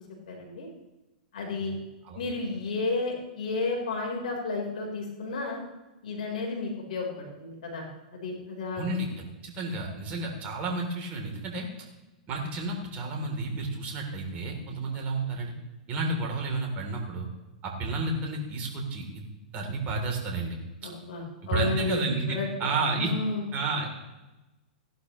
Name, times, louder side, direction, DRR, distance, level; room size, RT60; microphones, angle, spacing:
voice 1, 0.3-0.7 1.3-1.8 2.1-5.6 6.0-7.9 8.1-8.9 20.8-22.5 22.9-23.4, left 3 dB, 70° left, 0 dB, 4.2 m, -32 dB
voice 2, 8.7-11.7 12.3-15.5 15.9-17.3 17.6-19.2 19.5-20.6 21.4-23.1 23.5-23.9, right 3 dB, 35° right, 1 dB, 3.3 m, -31 dB
16.0 x 11.5 x 3.2 m, 1.1 s
hypercardioid pair, 115°, 4 cm